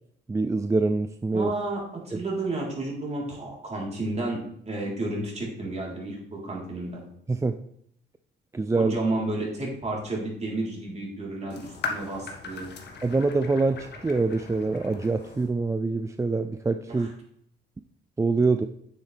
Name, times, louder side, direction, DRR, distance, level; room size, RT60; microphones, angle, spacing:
voice 1, 0.3-1.5 7.3-7.6 8.5-9.0 13.0-17.1 18.2-18.7, right 3 dB, 15° right, 9 dB, 0.4 m, -25 dB
voice 2, 1.3-4.4 4.7-7.0 8.8-12.7 16.9-17.1, right 2 dB, 35° right, -3 dB, 3.8 m, -31 dB
sound 1, 11.5-15.5, left 4 dB, 60° left, 1.7 m, -38 dB
9.6 x 7.1 x 3.4 m, 0.72 s
cardioid pair, 90°, 20 cm